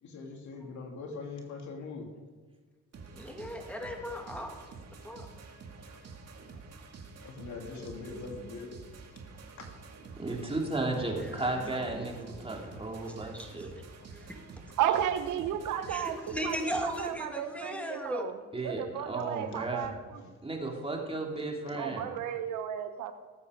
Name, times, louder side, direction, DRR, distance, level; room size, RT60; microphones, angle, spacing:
voice 1, 0.0-2.1 7.2-8.7 9.6-9.7 19.5-19.6, left 4 dB, 70° left, 1 dB, 2.9 m, -42 dB
sound 1, 2.9-17.2, right 4 dB, 55° right, 2.3 m, -49 dB
voice 2, 3.1-4.5 5.0-5.3 11.1-12.0 12.3-12.7 13.3-13.7 14.1-14.4 15.9-18.3, equal, 5° left, 2 dB, 2.5 m, -38 dB
voice 3, 10.2-13.7 18.5-19.9 20.4-22.1, right 2 dB, 20° right, 0 dB, 3.1 m, -34 dB
voice 4, 14.8-18.3 18.6-19.9 21.8-23.1, right 10 dB, 80° right, 10 dB, 1.0 m, -33 dB
18.5 x 8.3 x 5.1 m, 1.4 s
cardioid pair, 90°, 30 cm